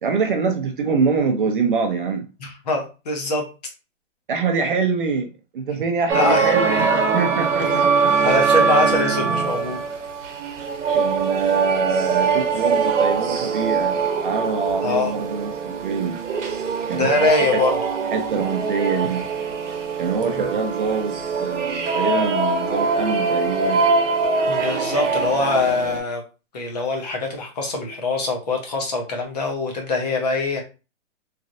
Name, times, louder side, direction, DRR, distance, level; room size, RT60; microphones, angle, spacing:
voice 1, 0.0-2.3 4.3-8.2 10.9-16.2 16.9-17.6 18.1-19.3 20.0-23.8, right 5 dB, 45° right, 4 dB, 0.5 m, -25 dB
voice 2, 2.4-3.4 6.1-6.5 7.6-7.8 8.2-9.8 14.8-15.1 16.9-17.8 20.2-20.5 24.5-26.2 26.5-30.6, left 3 dB, 35° left, 2 dB, 0.7 m, -23 dB
sound 1, 6.1-26.0, right 4 dB, 70° right, 0.9 m, -22 dB
3.1 x 2.5 x 2.5 m, 0.31 s
hypercardioid pair, 165°, 37 cm